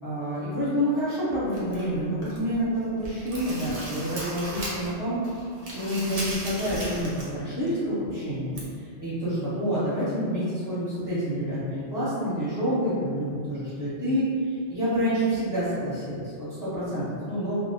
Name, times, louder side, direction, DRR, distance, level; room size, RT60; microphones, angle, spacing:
voice 1, 0.0-5.4 5.7-17.6, equal, 20° left, -12 dB, 0.8 m, -28 dB
sound 1, 1.5-2.5 2.9-5.0 5.2-7.4 7.7-7.8 8.6-8.7, right 1 dB, 55° right, 0.4 m, -36 dB
2.1 x 2.1 x 2.8 m, 2.2 s
omnidirectional pair, 1.2 m